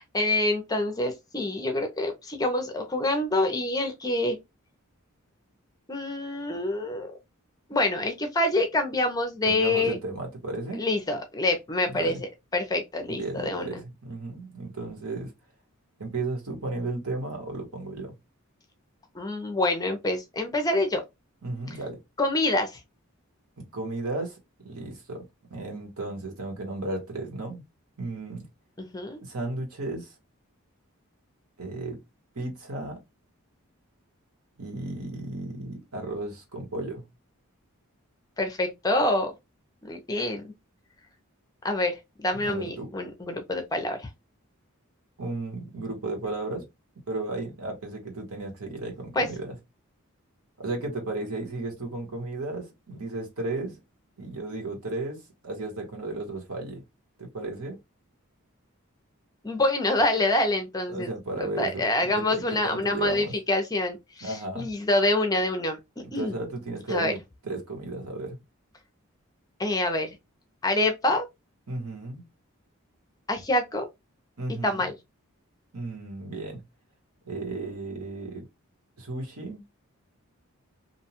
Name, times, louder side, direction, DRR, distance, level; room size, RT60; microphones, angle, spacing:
voice 1, 0.0-4.4 5.9-7.1 7.7-10.0 10.8-12.2 12.5-13.7 19.1-21.0 21.7-21.8 22.2-22.8 28.8-29.2 38.4-39.3 39.8-40.4 41.6-44.1 49.2-49.3 59.4-61.1 61.4-65.8 66.1-66.3 66.9-67.1 69.6-70.1 70.6-71.3 73.3-73.9 74.6-74.9, left 2 dB, 15° left, 0.4 m, -26 dB
voice 2, 9.4-10.9 11.9-12.2 13.1-15.3 16.0-18.1 21.4-22.0 23.6-25.2 25.5-27.6 28.0-28.4 29.2-30.1 31.6-32.0 32.3-33.0 34.6-37.0 42.3-42.9 45.2-46.6 47.1-49.5 50.6-53.8 54.2-56.8 57.2-57.8 60.9-63.3 64.2-64.7 66.0-67.2 67.4-68.4 71.7-72.3 74.4-74.9 75.7-76.6 77.3-78.4 79.0-79.6, right 2 dB, 75° right, 1.2 m, -34 dB
2.7 x 2.2 x 2.8 m
head